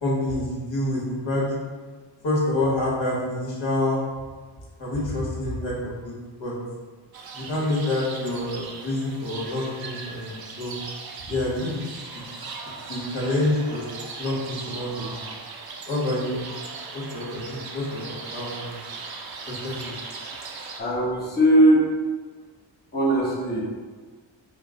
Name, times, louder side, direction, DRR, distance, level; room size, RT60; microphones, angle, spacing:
voice 1, 0.0-1.6 2.2-4.0 4.8-6.1 6.4-6.5 7.3-10.8 11.3-11.8 12.9-13.8 14.2-15.2 15.9-16.4 16.9-18.8 19.5-19.9, left 1 dB, 70° left, -6 dB, 1.4 m, -27 dB
sound 1, 7.1-20.8, right 4 dB, 50° right, 0.5 m, -38 dB
voice 2, 20.8-21.9 22.9-23.6, right 1 dB, 20° left, -6 dB, 0.8 m, -19 dB
4.9 x 2.1 x 3.7 m, 1.4 s
wide cardioid pair, 130°, 47 cm